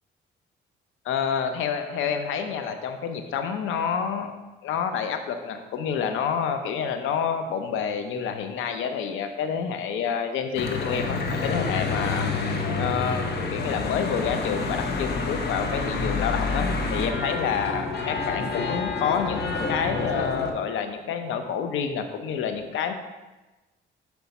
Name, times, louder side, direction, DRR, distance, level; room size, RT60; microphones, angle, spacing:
voice 1, 1.0-4.3 4.6-12.3 12.8-13.3 13.5-22.9, left 7 dB, 85° left, 7 dB, 0.7 m, -28 dB
Church bell / Traffic noise roadway noise, 10.5-20.5, left 3 dB, 55° left, 0.9 m, -28 dB
7.1 x 4.6 x 4.1 m, 1.1 s
cardioid pair, 90°, 20 cm